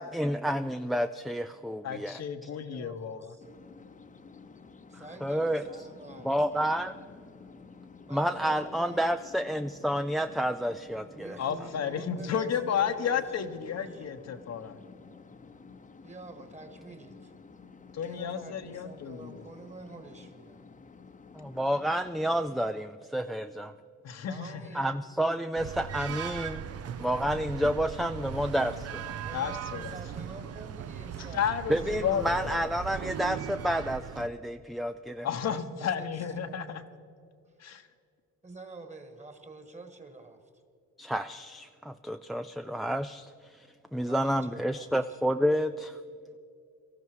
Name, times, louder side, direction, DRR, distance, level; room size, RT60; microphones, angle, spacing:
voice 1, 0.0-2.5 5.2-5.6 6.2-6.9 8.1-11.4 21.3-23.7 24.7-26.7 27.0-29.1 31.7-35.6 41.0-46.0, equal, ahead, 10 dB, 0.3 m, -30 dB
voice 2, 1.8-3.3 11.4-14.8 17.9-19.4 24.0-24.5 29.3-30.0 31.3-32.7 35.2-36.8 37.6-37.9, left 8 dB, 60° left, 8 dB, 1.0 m, -32 dB
voice 3, 2.4-3.5 4.9-6.6 8.1-9.2 11.0-14.1 16.0-17.3 18.0-20.6 24.2-24.9 29.2-32.1 36.0-37.3 38.4-40.4 44.1-45.2, right 3 dB, 25° right, 7 dB, 1.9 m, -48 dB
sound 1, 3.4-22.7, left 4 dB, 25° left, 0.9 m, -51 dB
sound 2, 25.6-34.3, right 8 dB, 55° right, 0.8 m, -39 dB
18.0 x 14.0 x 4.7 m, 2.4 s
cardioid pair, 90°, 30 cm